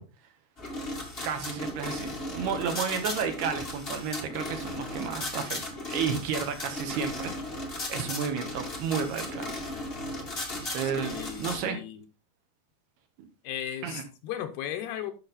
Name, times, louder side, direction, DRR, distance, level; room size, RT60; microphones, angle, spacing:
sound 1, 0.6-11.6, left 2 dB, 45° left, 0.7 m, -36 dB
voice 1, 1.2-9.5 10.6-11.8 13.2-13.3 13.8-14.0, right 7 dB, 70° right, 6 dB, 3.2 m, -32 dB
voice 2, 10.8-12.0 13.4-15.1, left 10 dB, 75° left, 7 dB, 2.7 m, -36 dB
11.5 x 6.3 x 4.1 m, 0.32 s
omnidirectional pair, 5.0 m